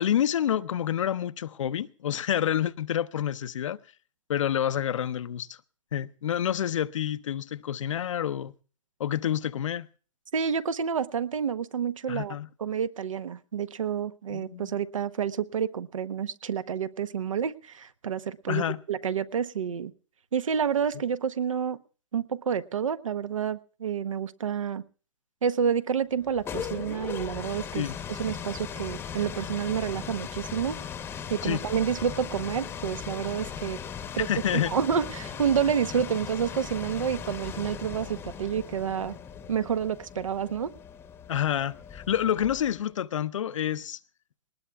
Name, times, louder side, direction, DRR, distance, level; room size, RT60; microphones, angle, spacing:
voice 1, 0.0-3.8 4.3-5.6 5.9-8.5 9.0-9.9 12.1-12.5 14.3-14.7 18.5-18.8 27.7-28.0 31.4-31.6 34.2-34.7 41.3-44.0, left 10 dB, 75° left, 0.7 m, -28 dB
voice 2, 10.3-18.6 18.9-19.9 20.3-21.8 22.1-24.8 25.4-30.8 31.3-33.8 34.1-34.3 34.7-39.1 39.5-40.7, right 7 dB, 90° right, 1.0 m, -29 dB
sound 1, 26.2-42.9, left 7 dB, 15° left, 0.8 m, -38 dB
19.5 x 19.5 x 2.3 m
hypercardioid pair, 145°, 16 cm